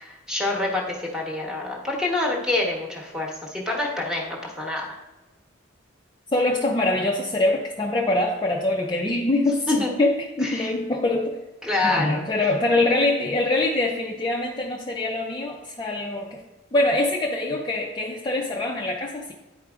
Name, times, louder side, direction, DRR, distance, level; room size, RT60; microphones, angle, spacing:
voice 1, 0.0-4.8 9.7-10.0 10.4-10.7 11.6-12.2, left 2 dB, 5° right, -2 dB, 1.0 m, -26 dB
voice 2, 6.3-11.3 11.8-16.4 16.7-19.3, left 2 dB, 20° left, -1 dB, 0.4 m, -24 dB
9.8 x 4.6 x 2.4 m, 1.0 s
head